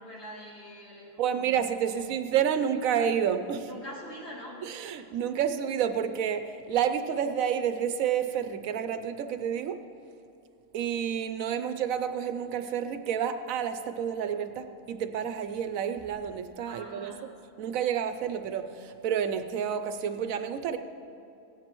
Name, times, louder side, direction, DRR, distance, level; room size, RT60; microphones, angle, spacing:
voice 1, 0.0-1.5 1.9-2.0 3.3-3.4 3.7-4.6 16.7-17.2, equal, 50° left, -7 dB, 3.1 m, -44 dB
voice 2, 1.2-3.8 4.6-9.8 10.7-17.1 17.6-20.8, right 8 dB, 75° right, 9 dB, 1.0 m, -29 dB
16.5 x 10.5 x 3.0 m, 2.8 s
omnidirectional pair, 1.5 m